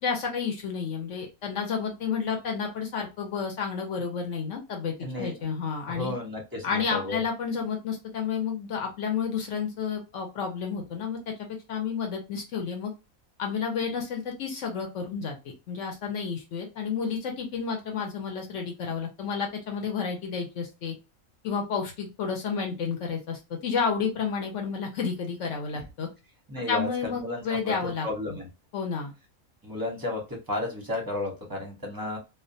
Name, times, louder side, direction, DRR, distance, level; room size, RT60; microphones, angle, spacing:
voice 1, 0.0-6.1 6.6-11.3 11.7-12.9 13.4-15.4 15.7-21.0 21.4-26.1 26.7-28.4 28.7-29.1, left 6 dB, 65° left, 2 dB, 0.9 m, -31 dB
voice 2, 5.0-5.3 5.9-7.2 26.5-28.5 29.6-32.2, left 2 dB, 20° right, -1 dB, 0.6 m, -33 dB
2.4 x 2.1 x 2.5 m, 0.27 s
omnidirectional pair, 1.5 m